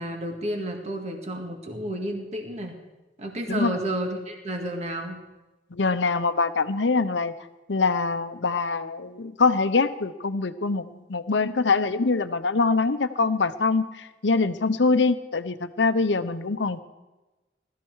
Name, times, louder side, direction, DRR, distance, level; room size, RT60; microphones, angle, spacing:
voice 1, 0.0-2.8 3.2-5.2, right 1 dB, 40° right, 3 dB, 1.9 m, -31 dB
voice 2, 5.7-7.3 7.7-16.8, left 4 dB, 75° left, 11 dB, 0.8 m, -24 dB
18.5 x 13.0 x 4.8 m, 1.1 s
head